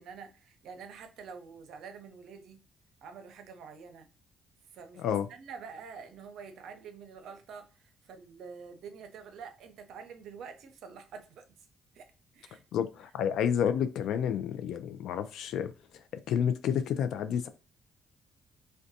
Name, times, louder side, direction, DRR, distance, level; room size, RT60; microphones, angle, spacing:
voice 1, 0.0-2.6 3.0-4.1 4.7-11.4 11.9-12.1 12.3-12.6, right 6 dB, 80° right, 0.5 m, -47 dB
voice 2, 12.7-15.7 16.3-17.5, left 8 dB, 80° left, 0.3 m, -30 dB
2.6 x 2.2 x 2.6 m
cardioid pair, 90°, 0 cm